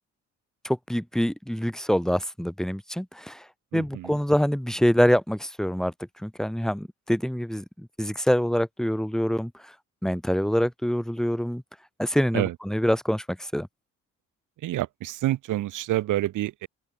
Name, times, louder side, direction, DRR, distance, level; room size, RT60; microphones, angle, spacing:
voice 1, 0.6-3.4 3.7-5.9 6.2-9.5 10.0-11.6 12.0-13.7, equal, ahead, 5.8 m, -25 dB
voice 2, 3.7-4.2 12.3-12.5 14.6-16.7, right 15 dB, 85° right, 3.1 m, -28 dB
open air
cardioid pair, 90°, 30 cm